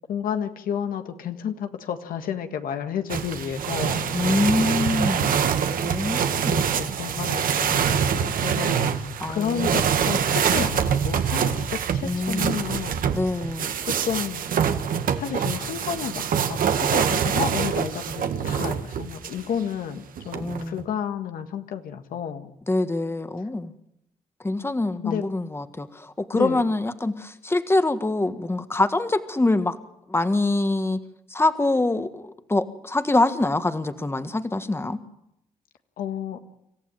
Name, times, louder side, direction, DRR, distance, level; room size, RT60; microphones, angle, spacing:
voice 1, 0.1-4.1 6.5-8.9 9.3-13.1 13.9-14.4 15.2-22.6 25.0-25.2 26.3-26.6 36.0-36.4, left 8 dB, 90° left, 7 dB, 1.7 m, -31 dB
sound 1, 3.1-19.4 20.2-20.8, right 7 dB, 75° right, 1.6 m, -25 dB
voice 2, 4.1-5.3 5.8-6.6 9.2-9.8 12.0-12.6 13.1-13.7 20.3-20.8 22.7-23.7 24.4-29.8 30.1-31.0 31.3-35.0, left 2 dB, 15° left, 10 dB, 1.6 m, -24 dB
26.5 x 15.0 x 9.0 m, 0.84 s
cardioid pair, 80°, 14 cm